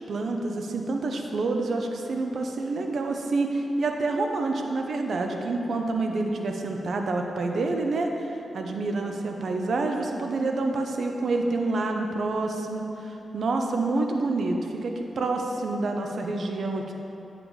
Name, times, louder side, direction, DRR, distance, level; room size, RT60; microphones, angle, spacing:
voice 1, 0.1-16.9, right 3 dB, 70° right, 3 dB, 0.7 m, -28 dB
8.7 x 7.6 x 3.2 m, 2.9 s
cardioid pair, 65°, 0 cm